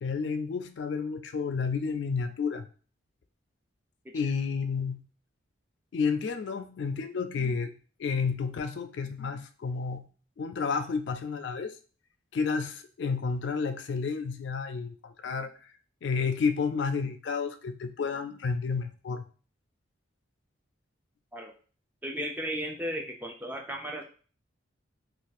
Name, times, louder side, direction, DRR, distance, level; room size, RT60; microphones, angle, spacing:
voice 1, 0.0-2.6 4.1-5.0 5.9-7.7 8.0-10.1 10.4-11.7 12.3-15.5 16.0-19.2, left 5 dB, 60° left, 9 dB, 0.3 m, -31 dB
voice 2, 22.0-24.0, equal, 10° right, 2 dB, 0.4 m, -35 dB
2.5 x 2.4 x 4.0 m, 0.40 s
head